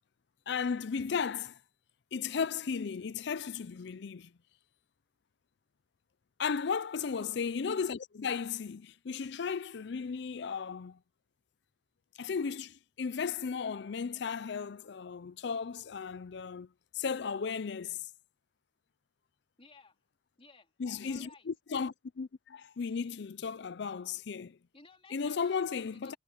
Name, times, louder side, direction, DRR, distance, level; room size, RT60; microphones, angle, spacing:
voice 1, 0.5-1.6 2.1-4.3 6.4-11.0 12.2-16.7 16.9-18.0 20.8-24.6 25.1-26.1, left 6 dB, 65° left, 0.5 m, -35 dB
voice 2, 19.6-20.0 20.4-20.7 21.0-21.5 24.7-26.2, left 3 dB, 30° left, 3.2 m, -57 dB
head